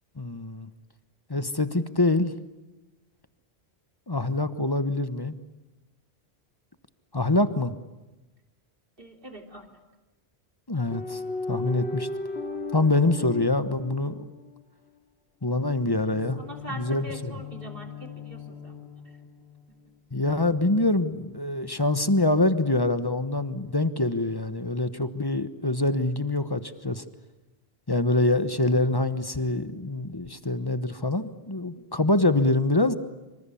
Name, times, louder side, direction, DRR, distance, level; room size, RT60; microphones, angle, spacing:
voice 1, 0.2-0.7 1.3-2.3 4.1-5.4 7.1-7.8 10.7-11.2 11.5-12.1 12.7-14.3 15.4-16.4 16.8-17.3 20.1-27.0 27.9-33.0, left 2 dB, 20° left, 12 dB, 1.1 m, -25 dB
voice 2, 9.0-9.8 16.4-18.8 19.1-19.2 19.7-19.8, right 1 dB, 55° right, 4 dB, 3.5 m, -42 dB
sound 1, 10.9-14.6 16.0-19.8 20.6-21.8, left 3 dB, 70° left, 2.5 m, -37 dB
26.0 x 25.5 x 8.6 m, 1.1 s
omnidirectional pair, 1.1 m